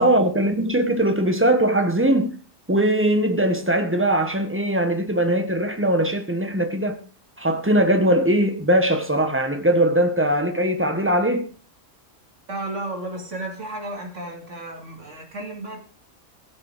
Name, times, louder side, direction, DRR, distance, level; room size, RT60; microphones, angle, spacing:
voice 1, 0.0-2.4 2.7-7.0 7.4-11.4, right 1 dB, 10° right, 1.5 m, -20 dB
voice 2, 12.5-15.9, right 1 dB, 70° right, 3.2 m, -33 dB
15.5 x 7.8 x 5.1 m
omnidirectional pair, 1.3 m